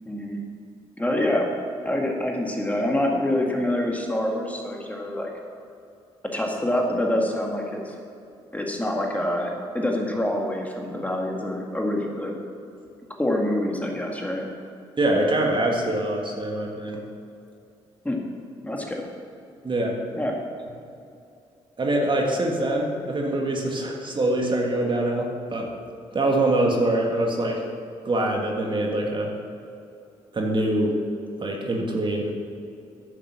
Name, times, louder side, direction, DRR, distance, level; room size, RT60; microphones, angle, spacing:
voice 1, 0.1-0.4 1.0-1.5 1.8-5.3 6.3-7.9 8.5-12.4 13.2-14.5 18.0-18.3 18.6-19.1 20.2-20.4, left 1 dB, 10° left, 0 dB, 2.0 m, -26 dB
voice 2, 15.0-17.0 19.6-20.0 21.8-25.7 26.1-27.6 28.1-29.3 30.3-31.0 31.4-32.3, right 1 dB, 40° right, 0 dB, 1.8 m, -24 dB
9.8 x 7.2 x 6.1 m, 2.6 s
hypercardioid pair, 50°, 13 cm